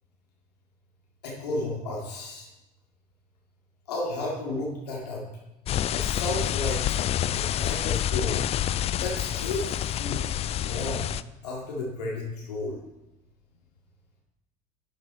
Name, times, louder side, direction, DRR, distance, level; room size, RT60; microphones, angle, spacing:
voice 1, 1.2-2.5 3.9-5.2 5.9-6.8 7.2-8.4 8.9-11.0 11.4-12.8, left 2 dB, 70° left, -3 dB, 2.4 m, -33 dB
sound 1, 5.7-11.2, left 11 dB, 30° left, 0.4 m, -28 dB
11.5 x 7.6 x 4.3 m, 0.93 s
figure-of-eight pair, 65°, 21 cm